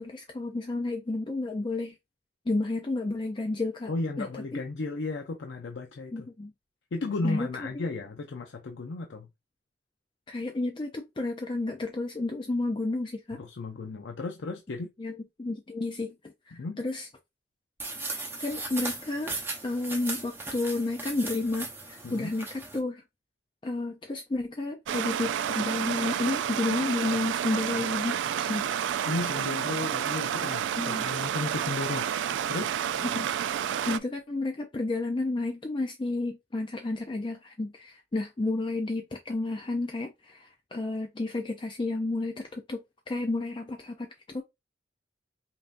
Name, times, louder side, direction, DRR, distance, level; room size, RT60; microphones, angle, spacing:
voice 1, 0.0-2.0 2.5-3.9 4.2-4.6 6.1-6.5 7.2-7.5 7.7-7.9 10.3-13.4 15.0-17.1 18.4-19.3 19.6-23.0 23.6-28.6 30.8-31.0 33.1-33.3 33.9-42.8 43.1-44.4, left 2 dB, 25° left, 0.4 m, -31 dB
voice 2, 3.9-6.3 6.9-9.3 13.4-14.9 16.5-16.8 22.0-22.3 29.1-32.1 32.5-32.7, left 3 dB, 75° left, 0.5 m, -34 dB
sound 1, 17.8-22.8, right 2 dB, 10° right, 0.8 m, -37 dB
Stream, 24.9-34.0, right 9 dB, 80° right, 0.3 m, -30 dB
5.2 x 2.6 x 2.5 m
head